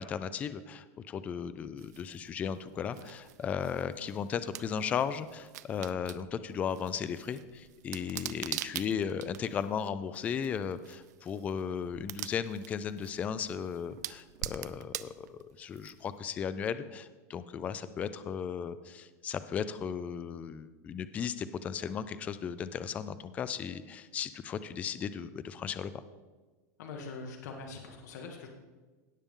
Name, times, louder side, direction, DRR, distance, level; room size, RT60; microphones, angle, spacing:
voice 1, 0.0-25.9, left 7 dB, 15° left, 13 dB, 0.3 m, -36 dB
sound 1, 1.8-16.3, right 13 dB, 75° right, 0.5 m, -45 dB
voice 2, 26.8-28.5, left 4 dB, 75° left, 2 dB, 1.5 m, -43 dB
17.0 x 6.8 x 3.7 m, 1.3 s
supercardioid pair, 170°, 9 cm